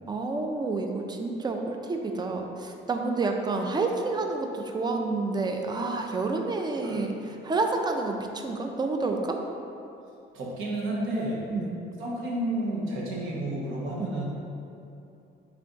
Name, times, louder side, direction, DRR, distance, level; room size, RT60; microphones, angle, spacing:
voice 1, 0.1-7.1 7.4-9.4 11.5-11.7 14.0-14.1, right 3 dB, 20° right, 3 dB, 0.4 m, -29 dB
voice 2, 10.3-11.4 12.0-14.3, right 1 dB, 85° right, -4 dB, 0.9 m, -31 dB
3.5 x 3.3 x 3.8 m, 2.7 s
cardioid pair, 90°, 20 cm